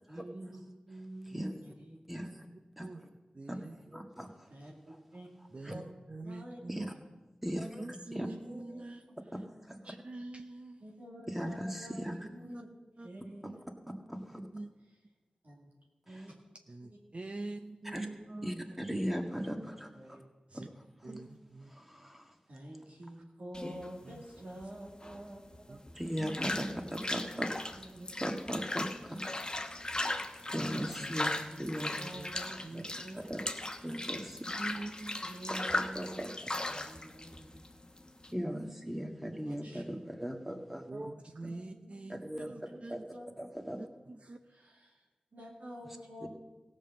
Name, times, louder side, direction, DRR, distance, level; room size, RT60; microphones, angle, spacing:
voice 1, 0.1-1.4 1.6-2.0 2.4-2.5 4.5-5.3 5.7-5.8 6.2-6.6 8.4-8.8 10.8-12.7 13.0-13.7 13.9-14.1 15.4-15.7 16.1-16.5 16.9-17.0 17.4-17.5 17.9-18.0 19.3-20.2 22.5-26.0 26.4-27.0 27.7-28.3 30.6-30.7 31.0-31.2 31.5-33.5 35.2-36.4 36.7-37.6 39.3-40.0 40.5-40.6 40.9-41.1 41.5-42.0 42.3-44.0 44.5-46.3, right 1 dB, 75° right, -3 dB, 2.3 m, -49 dB
voice 2, 2.1-2.5 2.8-2.9 3.5-3.6 3.9-4.5 5.6-5.7 6.7-6.9 7.4-7.9 8.1-8.3 9.6-9.8 11.3-12.1 13.4-13.5 14.1-14.4 16.1-16.2 17.9-18.1 18.4-20.2 21.7-22.3 26.0-27.5 28.2-29.5 30.4-31.3 31.6-31.9 32.7-32.8 33.3-33.4 33.8-34.4 35.5-36.3 38.3-40.8 42.1-42.5 42.9-43.0 43.4-43.8 46.2-46.3, equal, 5° right, 3 dB, 1.8 m, -38 dB
voice 3, 3.3-4.0 5.5-6.9 7.8-9.3 9.8-10.8 12.4-12.6 13.0-13.1 13.4-13.6 14.5-14.7 16.7-19.1 20.5-20.7 21.0-21.7 24.0-24.2 25.7-25.8 26.2-26.6 27.9-28.1 32.1-32.3 32.6-32.9 34.5-35.2 40.9-42.2 42.5-43.0 43.8-44.4, right 2 dB, 45° right, 6 dB, 0.7 m, -45 dB
sound 1, 23.5-38.3, left 2 dB, 30° left, 1.1 m, -38 dB
16.0 x 5.4 x 7.3 m, 1.2 s
cardioid pair, 40°, 3 cm